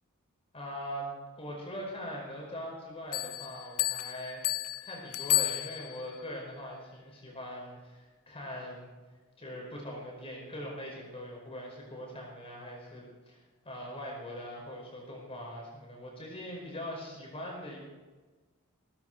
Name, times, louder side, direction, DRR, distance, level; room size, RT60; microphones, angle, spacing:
voice 1, 0.5-1.1 1.4-4.4 4.8-8.9 9.4-13.4 13.6-17.8, equal, 25° left, -2 dB, 5.0 m, -41 dB
Bell, 3.1-6.2, left 18 dB, 65° left, 0.4 m, -32 dB
16.5 x 16.0 x 4.6 m, 1.3 s
head